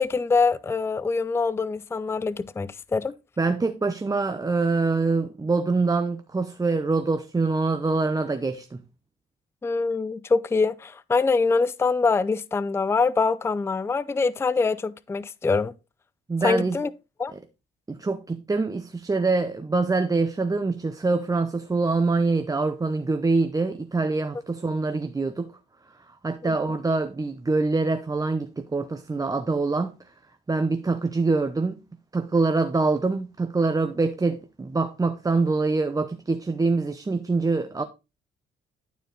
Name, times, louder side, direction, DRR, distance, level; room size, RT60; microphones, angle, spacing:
voice 1, 0.0-3.1 9.6-15.7 16.4-16.9 17.2-17.3 26.4-26.8, left 4 dB, 15° left, 0.4 m, -24 dB
voice 2, 3.4-8.8 16.3-16.8 17.3-17.4 17.9-25.5 26.1-30.0 30.5-31.8 32.1-37.8, right 3 dB, 20° right, 0.7 m, -25 dB
11.5 x 4.5 x 4.0 m
cardioid pair, 90°, 20 cm